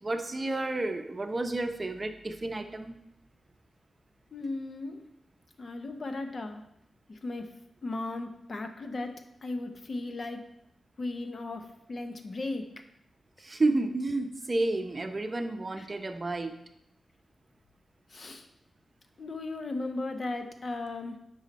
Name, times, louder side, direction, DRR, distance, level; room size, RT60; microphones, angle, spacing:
voice 1, 0.0-3.0 13.4-16.5, right 2 dB, 30° right, 6 dB, 0.8 m, -31 dB
voice 2, 4.3-5.0 5.6-6.6 7.1-7.5 7.8-9.1 9.4-10.4 11.0-12.7 15.8-15.9 18.1-18.5 19.2-21.2, left 2 dB, 45° left, 6 dB, 0.9 m, -36 dB
9.5 x 5.6 x 4.2 m, 0.82 s
wide cardioid pair, 110°, 0 cm